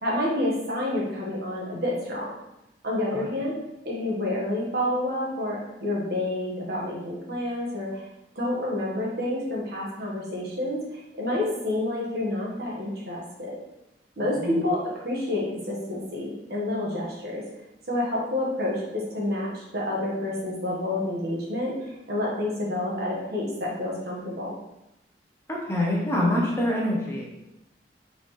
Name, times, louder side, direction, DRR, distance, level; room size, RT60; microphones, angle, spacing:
voice 1, 0.0-2.3 2.8-3.6 3.8-8.0 8.3-10.8 11.2-13.5 14.2-17.4 17.9-24.5, left 1 dB, 60° right, -4 dB, 1.3 m, -29 dB
voice 2, 25.5-27.2, left 1 dB, 15° left, -3 dB, 0.8 m, -25 dB
4.1 x 3.8 x 3.2 m, 0.90 s
head